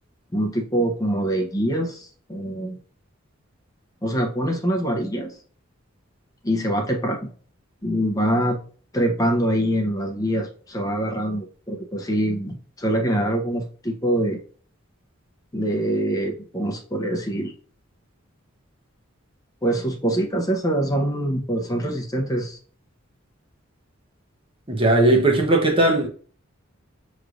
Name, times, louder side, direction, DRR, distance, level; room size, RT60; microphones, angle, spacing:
voice 1, 0.3-2.8 4.0-5.3 6.4-7.3 7.8-8.6 8.9-14.4 15.5-17.5 19.6-22.6, right 1 dB, 15° left, 0.7 m, -24 dB
voice 2, 24.7-26.1, right 2 dB, 25° right, 0.8 m, -18 dB
6.4 x 3.1 x 2.5 m
head